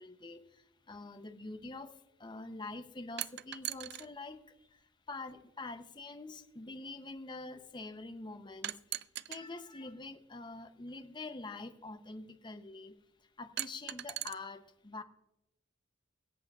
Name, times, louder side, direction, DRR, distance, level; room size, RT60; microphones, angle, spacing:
voice 1, 0.0-9.0 9.3-15.0, left 3 dB, 25° left, 8 dB, 0.6 m, -46 dB
sound 1, 3.2-4.1 5.3-5.4 8.6-9.4 10.9-11.0 13.6-14.3, right 14 dB, 55° right, 0.3 m, -39 dB
23.0 x 8.1 x 2.4 m, 0.88 s
head